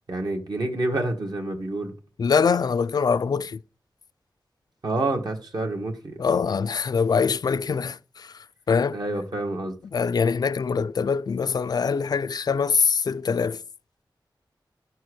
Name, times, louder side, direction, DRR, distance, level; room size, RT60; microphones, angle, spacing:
voice 1, 0.1-1.9 4.8-6.2 8.9-9.7, right 2 dB, 60° right, 1.7 m, -28 dB
voice 2, 2.2-3.6 6.2-9.0 9.9-13.6, left 5 dB, 55° left, 0.3 m, -24 dB
11.0 x 4.5 x 6.3 m
wide cardioid pair, 115°, 8 cm